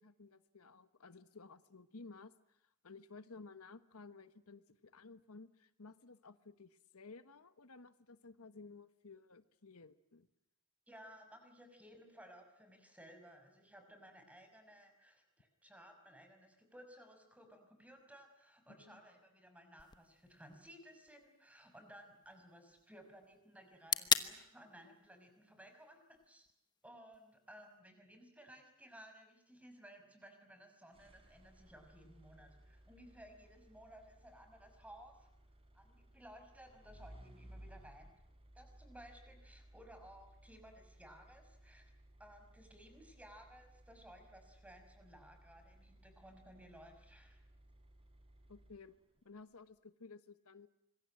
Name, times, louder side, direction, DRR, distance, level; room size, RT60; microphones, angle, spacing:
voice 1, 0.0-10.3 18.8-19.0 48.5-48.9 49.2-50.7, left 4 dB, 85° left, 12 dB, 1.3 m, -56 dB
voice 2, 10.9-26.5 26.8-35.3 35.7-38.1 38.5-41.9 42.2-47.4, equal, 5° right, 6 dB, 5.7 m, -58 dB
sound 1, 19.8-27.8, left 6 dB, 20° left, 1.1 m, -42 dB
sound 2, 30.9-49.2, right 1 dB, 25° right, 4.1 m, -61 dB
26.0 x 22.0 x 8.9 m, 0.79 s
head